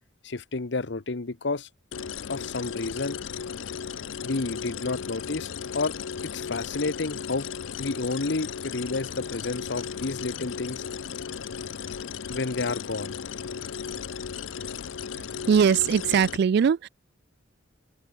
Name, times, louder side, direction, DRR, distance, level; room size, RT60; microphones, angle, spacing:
voice 1, 0.2-1.7 2.3-3.2 4.2-6.0 6.2-7.5 7.8-10.8 12.3-13.2, left 3 dB, 65° left, 1.0 m, -30 dB
sound 1, 1.9-16.4, left 7 dB, 90° left, 0.6 m, -36 dB
voice 2, 15.2-16.9, right 7 dB, 60° right, 0.3 m, -21 dB
open air
head